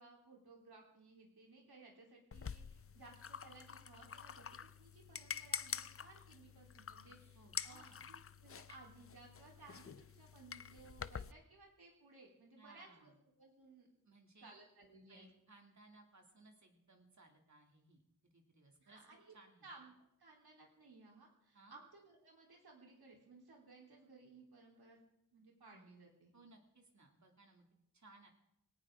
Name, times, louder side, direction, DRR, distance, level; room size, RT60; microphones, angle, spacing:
voice 1, 0.0-13.9 14.4-15.3 18.8-19.3 19.6-19.9 20.2-25.0 25.3-26.3, right 3 dB, 85° right, -1 dB, 3.9 m, -60 dB
sound 1, 2.3-11.3, left 7 dB, 40° left, 0.5 m, -47 dB
voice 2, 7.3-8.1 12.6-13.2 14.0-14.5 15.1-19.0 19.3-19.7 21.5-21.8 26.3-27.6 27.9-28.3, right 2 dB, 50° right, 2 dB, 2.7 m, -63 dB
20.0 x 18.0 x 3.8 m, 0.83 s
wide cardioid pair, 75°, 37 cm